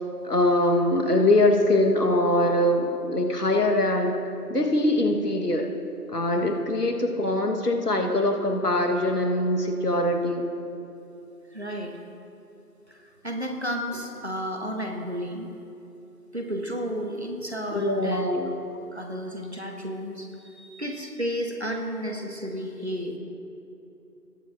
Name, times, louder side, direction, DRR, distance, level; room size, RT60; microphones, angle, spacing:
voice 1, 0.2-4.2 4.5-5.7 6.1-10.5 17.7-18.5, left 1 dB, 70° left, 4 dB, 1.3 m, -23 dB
voice 2, 11.5-11.9 12.9-15.5 16.3-18.3 18.7-23.2, equal, 40° right, 2 dB, 0.9 m, -32 dB
20.0 x 7.0 x 2.5 m, 2.9 s
figure-of-eight pair, 170°, 48 cm